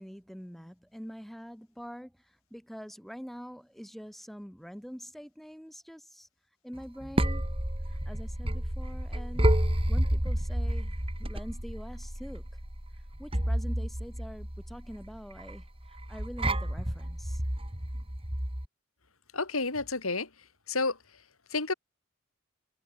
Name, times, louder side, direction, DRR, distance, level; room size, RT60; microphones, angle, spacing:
voice 1, 0.0-6.3 6.6-7.5 7.9-9.6 9.9-12.5 13.2-17.4, equal, ahead, 5.9 m, -45 dB
sound 1, 6.8-18.7, right 1 dB, 25° right, 3.5 m, -30 dB
voice 2, 19.3-20.3 20.7-21.0 21.5-21.7, left 3 dB, 90° left, 4.4 m, -30 dB
head